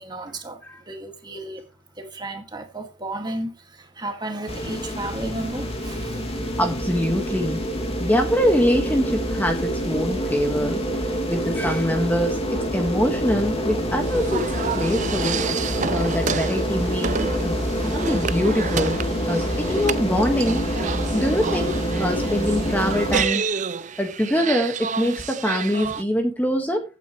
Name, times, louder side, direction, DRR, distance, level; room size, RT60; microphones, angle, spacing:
voice 1, 0.0-1.6 2.0-6.3, right 1 dB, 20° right, 2.1 m, -33 dB
sound 1, 4.5-23.3, equal, 30° left, 2.4 m, -26 dB
voice 2, 6.6-7.6 8.0-10.8 11.3-15.4 15.9-19.0 19.3-20.7 21.1-23.5 24.0-26.8, equal, 10° left, 1.6 m, -24 dB
sound 2, 14.0-26.0, right 6 dB, 40° right, 0.6 m, -30 dB
15.0 x 9.2 x 3.2 m
head